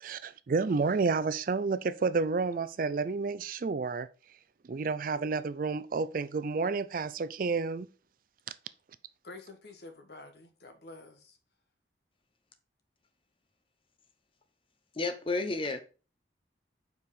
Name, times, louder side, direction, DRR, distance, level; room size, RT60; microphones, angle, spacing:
voice 1, 0.0-4.1 4.7-7.9, right 4 dB, 45° right, 0.4 m, -30 dB
voice 2, 9.2-11.4, left 2 dB, 60° left, 1.1 m, -49 dB
voice 3, 14.9-15.8, left 3 dB, 30° left, 0.8 m, -31 dB
5.3 x 4.7 x 4.8 m
head